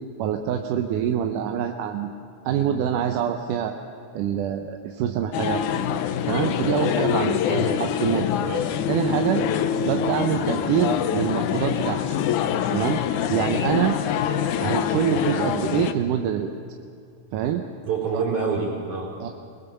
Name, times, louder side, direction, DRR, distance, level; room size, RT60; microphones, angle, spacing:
voice 1, 0.2-2.1 2.5-3.8 4.1-5.6 6.3-7.4 7.7-8.3 8.9-9.4 9.8-12.2 12.7-13.0 13.3-14.0 14.6-16.5 17.3-17.6 18.1-18.2 19.2-19.3, right 9 dB, 75° right, 4 dB, 2.3 m, -25 dB
sound 1, 5.3-15.9, left 9 dB, 75° left, 2.1 m, -25 dB
voice 2, 8.4-8.8 17.8-19.1, right 5 dB, 60° right, -2 dB, 5.7 m, -27 dB
23.5 x 20.5 x 7.0 m, 2.3 s
omnidirectional pair, 4.0 m